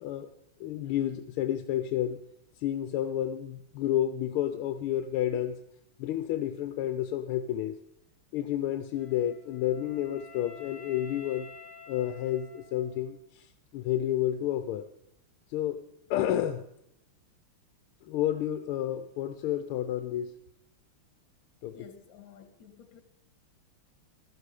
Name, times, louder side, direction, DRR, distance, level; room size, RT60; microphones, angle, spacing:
voice 1, 0.6-2.2 2.6-5.6 6.0-7.8 8.3-11.5 11.9-14.9 15.5-15.8 16.1-16.6 18.0-20.3 21.6-21.7, left 11 dB, 85° left, 10 dB, 1.5 m, -30 dB
Wind instrument woodwind instrument, 8.9-13.1, left 4 dB, 30° right, 6.9 m, -50 dB
voice 2, 21.7-23.0, left 6 dB, 60° left, 9 dB, 2.1 m, -52 dB
16.0 x 12.0 x 4.9 m, 0.80 s
omnidirectional pair, 2.3 m